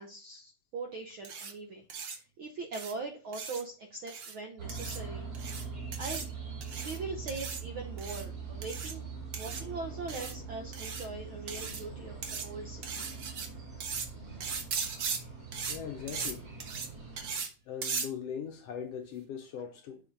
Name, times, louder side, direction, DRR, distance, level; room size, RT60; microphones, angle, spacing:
voice 1, 0.0-5.3 6.0-6.2 6.8-9.0 9.3-13.1, right 3 dB, 70° right, 1.2 m, -41 dB
sound 1, 1.2-1.5 1.9-2.2 2.7-2.9 3.3-3.6 4.1-4.3 4.7-5.0 5.3-5.6 5.9-6.3 6.6-7.0 7.3-7.6 8.0-8.2 8.6-8.9 9.3-9.6 10.1-10.3 10.7-11.1 11.5-11.8 12.2-12.5 12.8-13.5 13.8-14.1 14.4-15.2 15.5-15.8 16.1-16.3 16.6-16.9 17.2-17.5 17.8-18.1, right 5 dB, 55° right, 1.4 m, -37 dB
sound 2, 4.6-17.4, right 5 dB, 40° right, 4.3 m, -43 dB
voice 2, 15.7-16.5 17.7-20.0, left 7 dB, 70° left, 1.5 m, -40 dB
7.4 x 4.9 x 3.9 m
omnidirectional pair, 3.4 m